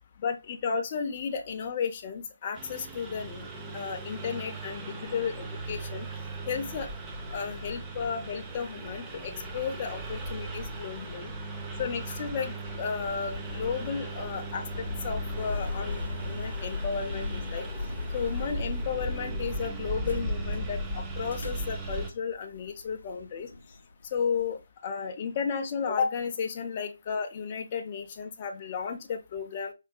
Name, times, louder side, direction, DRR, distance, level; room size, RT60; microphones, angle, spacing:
voice 1, 0.2-6.1 6.5-6.9 7.3-11.3 11.8-17.7 18.1-23.5 24.1-29.7, left 6 dB, 30° left, 4 dB, 0.5 m, -33 dB
Engine, 2.5-22.1, right 3 dB, 15° right, 0.6 m, -38 dB
sound 1, 5.6-24.5, left 3 dB, 75° left, 0.7 m, -40 dB
4.6 x 3.3 x 2.2 m, 0.25 s
figure-of-eight pair, 155°, 0 cm